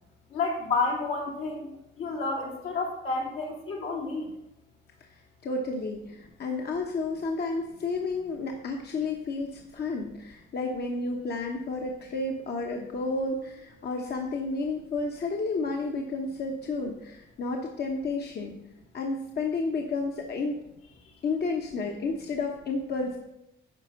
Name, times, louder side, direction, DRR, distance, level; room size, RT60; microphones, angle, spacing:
voice 1, 0.3-4.3, left 3 dB, 80° left, -1 dB, 2.6 m, -30 dB
voice 2, 5.1-18.6 18.9-20.6 21.2-23.2, left 3 dB, 55° left, 1 dB, 1.1 m, -31 dB
11.0 x 4.4 x 6.5 m, 0.87 s
cardioid pair, 90°, 20 cm